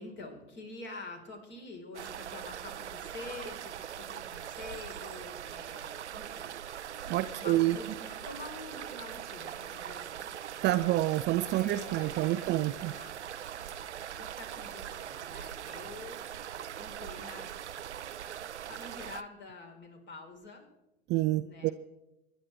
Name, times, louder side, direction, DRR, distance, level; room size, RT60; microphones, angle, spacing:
voice 1, 0.0-6.5 7.4-10.3 11.5-13.2 14.2-16.2 16.8-17.5 18.7-20.7 21.4-21.7, left 3 dB, 35° left, 2 dB, 4.1 m, -47 dB
sound 1, 1.9-19.2, right 9 dB, 90° right, 0.5 m, -41 dB
voice 2, 7.1-7.8 10.6-12.9 21.1-21.7, right 16 dB, 35° right, 12 dB, 0.5 m, -28 dB
25.0 x 11.0 x 3.3 m, 0.93 s
figure-of-eight pair, 85°, 34 cm